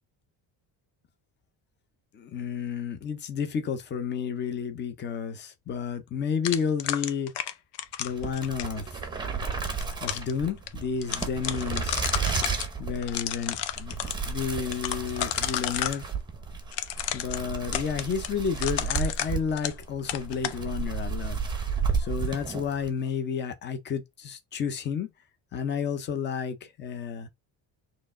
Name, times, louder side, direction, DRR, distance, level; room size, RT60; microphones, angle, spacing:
voice 1, 2.1-7.3 8.0-9.0 10.0-12.0 12.8-13.9 14.3-16.0 17.1-21.4 21.6-25.1 25.5-27.3, left 6 dB, 25° left, 0.5 m, -31 dB
sound 1, 6.4-8.8 9.6-10.3 10.7-10.8 11.0-12.7 13.0-14.2 14.7-16.0 16.7-19.8 20.1-20.6, left 11 dB, 70° left, 0.7 m, -31 dB
sound 2, 8.1-23.0, right 5 dB, 10° right, 0.8 m, -33 dB
4.5 x 3.1 x 3.5 m
cardioid pair, 180°, 43 cm